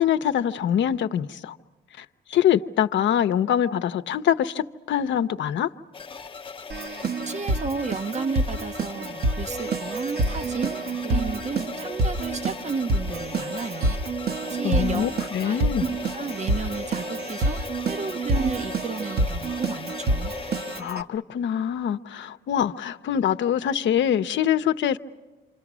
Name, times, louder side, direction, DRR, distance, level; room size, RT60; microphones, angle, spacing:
voice 1, 0.0-1.6 2.0-5.7 14.6-15.8 20.8-25.0, left 9 dB, 70° left, 0.8 m, -24 dB
sound 1, 5.9-20.8, left 5 dB, 25° left, 0.8 m, -38 dB
Keyboard (musical), 6.7-21.0, right 2 dB, 55° right, 1.2 m, -28 dB
voice 2, 7.3-14.0 14.5-15.1 15.4-17.6 17.8-20.3, right 4 dB, 35° right, 0.8 m, -32 dB
28.0 x 26.0 x 6.2 m
cardioid pair, 90°, 20 cm